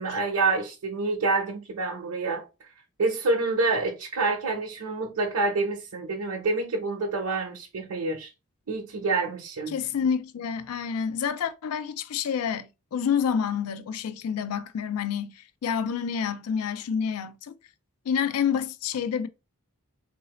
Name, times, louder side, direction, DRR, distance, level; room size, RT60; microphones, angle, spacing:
voice 1, 0.0-2.7 3.0-8.3 8.7-9.7, right 3 dB, 65° right, 0.8 m, -27 dB
voice 2, 9.7-17.5 18.1-19.3, left 7 dB, 70° left, 0.4 m, -28 dB
3.9 x 2.7 x 2.9 m
head